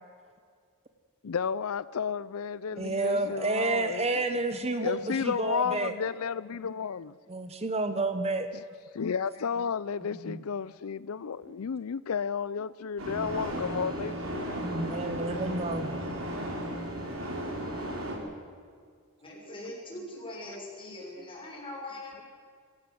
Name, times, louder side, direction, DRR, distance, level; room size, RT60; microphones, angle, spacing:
voice 1, 1.2-4.1 4.8-7.1 8.9-14.6, left 6 dB, 80° left, 0.5 m, -32 dB
voice 2, 2.8-5.9 7.3-8.5 10.1-10.4 14.6-15.9, right 2 dB, 30° right, 1.2 m, -30 dB
sound 1, 13.0-18.2, right 1 dB, 70° right, 5.1 m, -34 dB
voice 3, 19.2-22.2, left 1 dB, 25° left, 6.4 m, -41 dB
25.5 x 16.5 x 7.8 m
head